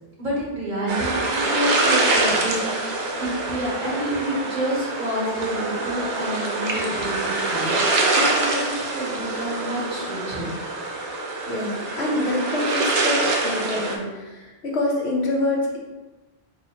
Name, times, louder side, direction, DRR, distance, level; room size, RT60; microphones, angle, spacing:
voice 1, 0.2-10.5, equal, 50° right, -6 dB, 1.4 m, -29 dB
sound 1, 0.9-14.0, right 2 dB, 70° right, 0.9 m, -25 dB
voice 2, 11.4-15.8, left 2 dB, 85° left, -2 dB, 1.2 m, -26 dB
4.2 x 3.4 x 2.9 m, 1.1 s
omnidirectional pair, 1.1 m